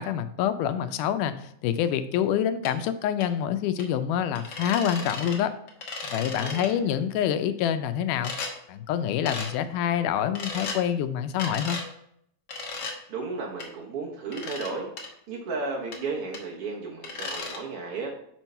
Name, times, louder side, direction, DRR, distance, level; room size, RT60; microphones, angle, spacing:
voice 1, 0.0-1.3 1.6-5.5 6.0-8.3 8.7-11.8, left 9 dB, 90° left, 11 dB, 2.1 m, -26 dB
sound 1, 2.6-2.7 3.2-3.3 3.8-3.9 4.3-5.4 5.7-6.7 8.2-8.5 9.3-9.5 10.3-10.8 11.4-11.9 12.5-12.9 13.6-13.7 14.3-14.7 15.0-15.1 15.9-16.0 16.3-16.4 17.0-17.6, left 3 dB, 65° left, 1.0 m, -35 dB
voice 2, 6.4-6.9 13.1-14.9 15.3-18.1, right 4 dB, 60° right, -1 dB, 1.6 m, -34 dB
6.6 x 4.6 x 5.4 m, 0.70 s
omnidirectional pair, 3.6 m